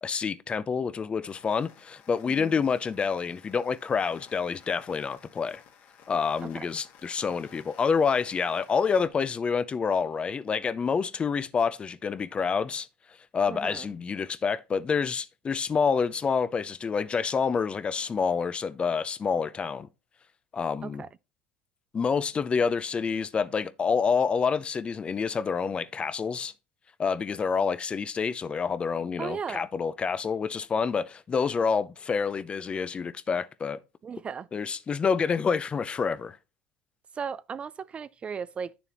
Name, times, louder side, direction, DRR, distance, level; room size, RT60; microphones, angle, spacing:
voice 1, 0.0-5.6 6.1-12.9 13.3-19.9 20.5-21.0 21.9-26.5 27.0-33.8 34.5-36.4, left 5 dB, 25° left, 0.5 m, -28 dB
sound 1, 1.2-9.1, left 7 dB, 55° left, 1.8 m, -55 dB
voice 2, 13.5-13.9 20.8-21.1 29.2-29.7 34.0-34.5 37.1-38.7, right 6 dB, 30° right, 0.3 m, -36 dB
9.0 x 6.9 x 2.9 m
hypercardioid pair, 90°, 4 cm